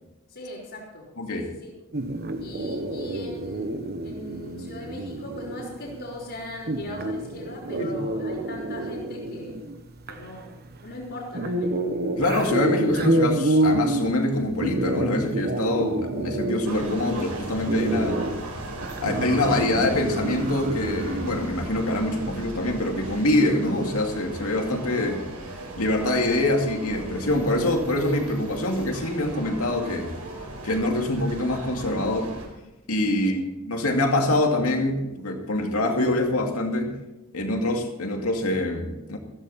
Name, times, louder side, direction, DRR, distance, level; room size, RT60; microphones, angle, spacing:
voice 1, 0.3-1.7 2.4-3.8 4.0-9.6 10.1-11.8 33.1-33.3, left 1 dB, 55° left, -10 dB, 4.3 m, -39 dB
sound 1, 1.9-21.5, right 1 dB, 45° right, 1.2 m, -29 dB
voice 2, 12.2-18.2 19.0-25.2 25.8-30.1 30.6-32.3 32.9-36.9 37.3-39.2, left 1 dB, 75° left, 3 dB, 2.4 m, -25 dB
sound 2, 16.6-32.5, right 1 dB, 85° right, 4.8 m, -37 dB
15.0 x 15.0 x 4.3 m, 1.0 s
head